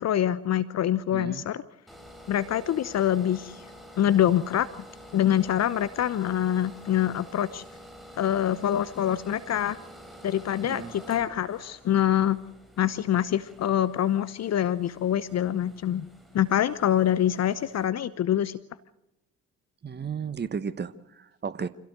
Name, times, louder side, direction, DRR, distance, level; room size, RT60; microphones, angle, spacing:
voice 1, 0.0-1.6 2.3-3.6 4.0-4.7 5.1-7.6 8.2-9.8 10.2-12.4 12.8-16.1 16.3-18.6, left 11 dB, 50° left, 15 dB, 0.9 m, -25 dB
voice 2, 1.1-1.4 10.6-10.9 19.8-21.7, right 6 dB, 30° right, 15 dB, 1.2 m, -34 dB
sound 1, 1.9-17.9, equal, ahead, 6.9 m, -49 dB
26.5 x 16.5 x 6.5 m, 0.86 s
hypercardioid pair, 45°, 34 cm